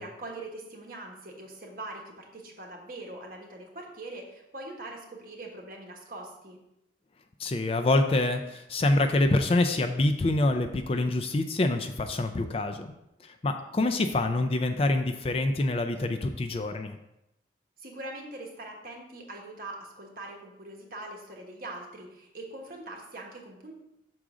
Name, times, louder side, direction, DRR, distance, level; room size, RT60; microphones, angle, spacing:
voice 1, 0.0-6.6 17.8-23.7, right 2 dB, 50° right, 0 dB, 1.2 m, -42 dB
voice 2, 7.4-12.9 13.4-17.0, left 2 dB, 30° left, 7 dB, 0.3 m, -26 dB
6.2 x 3.7 x 4.8 m, 0.87 s
head